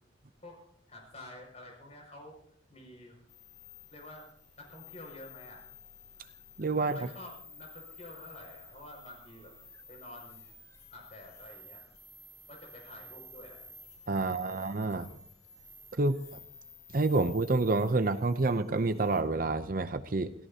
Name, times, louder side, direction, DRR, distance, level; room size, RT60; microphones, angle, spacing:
voice 1, 0.9-2.4 2.7-3.2 3.9-4.3 4.6-5.6 6.7-10.4 10.9-11.8 12.5-13.7 14.2-14.7, left 1 dB, 35° left, 1 dB, 6.0 m, -49 dB
sound 1, 3.3-19.2, left 3 dB, 15° left, 3.9 m, -53 dB
voice 2, 6.6-7.0 14.1-15.1 16.0-16.2 16.9-20.3, right 3 dB, 45° right, 11 dB, 0.6 m, -28 dB
28.0 x 17.0 x 2.8 m, 0.64 s
head